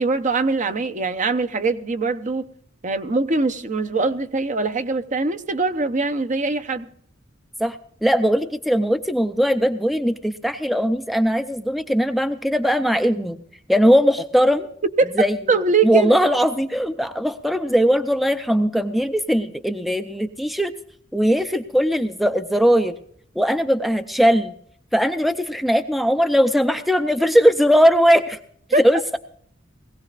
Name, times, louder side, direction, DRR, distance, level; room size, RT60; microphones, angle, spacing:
voice 1, 0.0-2.5 2.8-6.9 15.0-15.1 15.5-16.2 28.7-28.8, right 3 dB, 40° right, 0.8 m, -22 dB
voice 2, 8.0-13.4 13.7-14.7 15.2-20.7 21.1-23.0 23.4-24.5 24.9-28.4 28.8-29.2, equal, ahead, 0.5 m, -19 dB
21.0 x 16.5 x 2.5 m
head